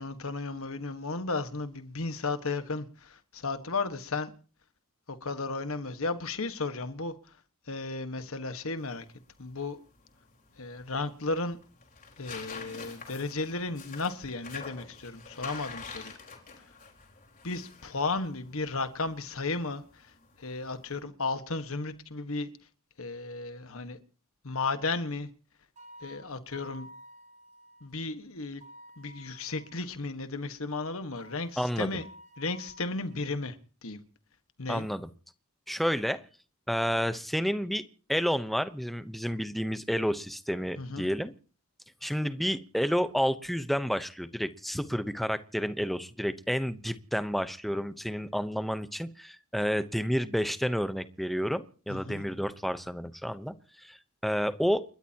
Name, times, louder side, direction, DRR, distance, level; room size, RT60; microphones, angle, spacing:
voice 1, 0.0-4.3 5.1-7.4 7.7-9.0 9.4-9.8 10.6-11.6 12.2-16.1 17.4-20.1 20.4-22.5 23.0-24.0 24.4-25.3 26.0-26.9 27.8-28.6 29.0-32.1 32.4-33.6 33.8-34.0 34.6-34.9 40.8-41.1 51.9-52.2, left 3 dB, 65° left, 1.5 m, -34 dB
sound 1, 8.8-21.0, left 5 dB, 40° left, 4.4 m, -47 dB
sound 2, 25.8-27.9 28.6-29.9 31.2-33.3, right 1 dB, 35° right, 4.3 m, -52 dB
voice 2, 31.6-32.0 34.7-35.1 35.7-36.2 36.7-37.8 38.1-41.3 42.0-53.5 53.8-54.0 54.2-54.8, equal, ahead, 0.8 m, -30 dB
30.0 x 13.5 x 2.9 m
head